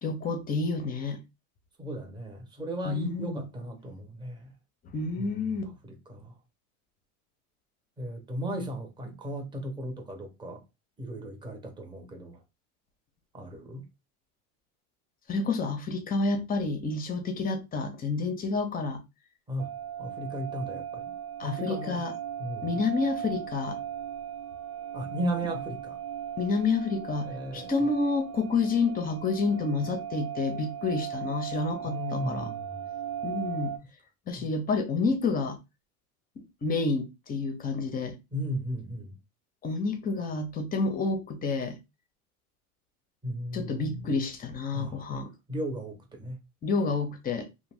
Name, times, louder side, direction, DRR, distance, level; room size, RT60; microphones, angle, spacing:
voice 1, 0.0-1.2 2.9-3.4 4.9-5.6 15.3-19.0 21.4-22.1 22.6-23.8 26.4-32.5 33.2-33.7 34.3-35.6 36.6-38.2 39.6-41.8 43.5-45.3 46.6-47.5, left 4 dB, 20° left, 0.5 m, -29 dB
voice 2, 1.8-4.5 5.2-6.3 8.0-10.6 11.0-12.4 13.3-13.9 19.5-19.7 20.0-22.0 22.4-22.8 24.9-26.0 27.2-27.9 31.9-32.8 34.3-34.5 38.3-39.2 43.2-44.1 44.7-46.4, equal, 10° right, 0.7 m, -36 dB
sound 1, 19.6-33.8, right 9 dB, 65° right, 0.8 m, -38 dB
2.5 x 2.2 x 3.2 m
hypercardioid pair, 110°, 44 cm